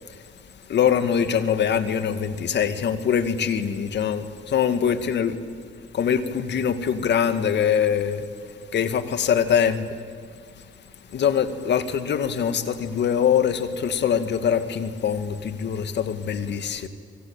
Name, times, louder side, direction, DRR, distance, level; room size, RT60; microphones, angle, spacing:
voice 1, 0.7-5.4 5.9-8.3 8.7-9.9 11.1-16.9, left 8 dB, 60° left, 2.1 m, -23 dB
26.5 x 25.0 x 8.9 m
cardioid pair, 90°, 20 cm